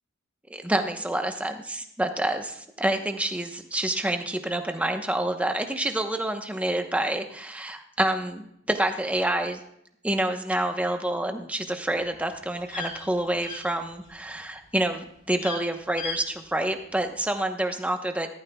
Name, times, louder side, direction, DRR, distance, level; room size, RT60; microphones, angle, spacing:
voice 1, 0.5-9.6 10.0-18.3, right 1 dB, 5° right, 5 dB, 0.9 m, -28 dB
sound 1, 11.9-14.3 14.6-14.9 15.3-15.6 16.0-16.2 16.5-16.6, left 4 dB, 40° left, 2.7 m, -37 dB
15.5 x 13.5 x 2.3 m, 0.73 s
head